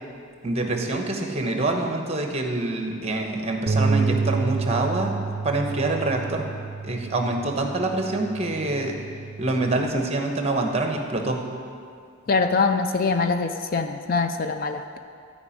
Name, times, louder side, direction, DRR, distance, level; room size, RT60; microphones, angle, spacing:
voice 1, 0.4-5.1 5.4-6.5 6.8-9.0 9.4-11.4, right 2 dB, 30° right, 3 dB, 1.1 m, -26 dB
Bass guitar, 3.7-9.9, right 4 dB, 45° right, 0.5 m, -29 dB
voice 2, 12.3-15.0, left 4 dB, 40° left, 8 dB, 0.4 m, -23 dB
13.0 x 5.1 x 8.5 m, 2.3 s
head